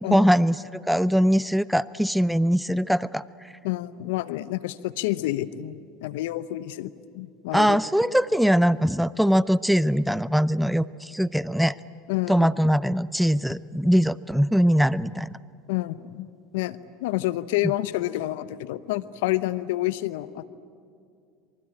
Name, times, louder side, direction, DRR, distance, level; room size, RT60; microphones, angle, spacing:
voice 1, 0.0-3.2 7.5-11.7 12.3-15.3, equal, ahead, 18 dB, 0.6 m, -22 dB
voice 2, 3.6-7.8 12.1-12.5 15.7-16.3 16.5-20.5, left 16 dB, 70° left, 15 dB, 0.9 m, -29 dB
25.0 x 24.5 x 8.9 m, 2.4 s
hypercardioid pair, 85°, 0 cm